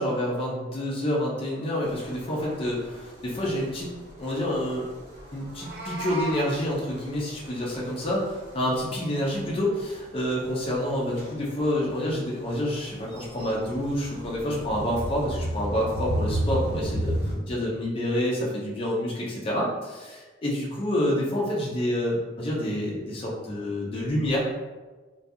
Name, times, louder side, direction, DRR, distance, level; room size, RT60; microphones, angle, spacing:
voice 1, 0.0-3.9 4.2-4.9 5.3-24.4, left 1 dB, 30° left, -4 dB, 0.4 m, -28 dB
sound 1, 1.8-17.3, right 1 dB, 80° right, 1.3 m, -36 dB
Meow, 5.4-6.5, equal, 60° right, 0.5 m, -35 dB
2.3 x 2.2 x 2.6 m, 1.3 s
head